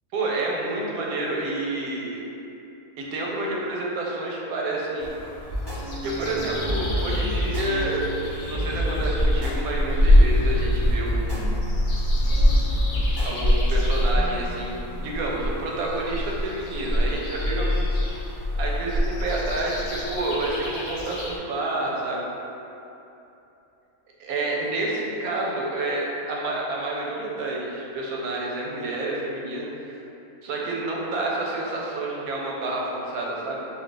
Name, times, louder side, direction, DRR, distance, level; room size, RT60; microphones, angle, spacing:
voice 1, 0.1-2.2 3.0-5.1 6.0-8.1 8.4-11.5 13.2-17.9 18.6-22.3 24.2-30.0 30.4-33.7, right 2 dB, 85° right, -3 dB, 1.0 m, -29 dB
sound 1, 5.0-21.4, left 1 dB, 75° left, 1.0 m, -25 dB
sound 2, 5.5-18.1, equal, 20° left, 0.8 m, -30 dB
2.6 x 2.3 x 3.8 m, 2.9 s
omnidirectional pair, 1.5 m